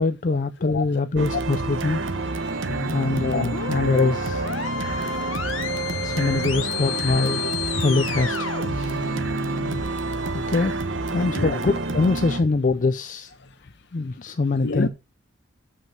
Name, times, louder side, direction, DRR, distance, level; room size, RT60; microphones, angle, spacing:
voice 1, 0.0-4.5 6.0-7.4 7.7-9.2 10.3-10.7 11.1-13.3 13.9-14.9, left 3 dB, 40° left, 0.5 m, -24 dB
sound 1, 1.2-12.4, right 3 dB, 65° right, 1.0 m, -28 dB
voice 2, 2.4-2.9 3.3-3.5 4.8-5.3 7.4-7.5 9.0-9.1 11.3-11.6 13.4-13.5 14.6-14.9, left 3 dB, 60° left, 1.0 m, -30 dB
sound 2, 2.7-9.8, left 4 dB, 80° left, 1.2 m, -31 dB
7.3 x 6.2 x 5.8 m
head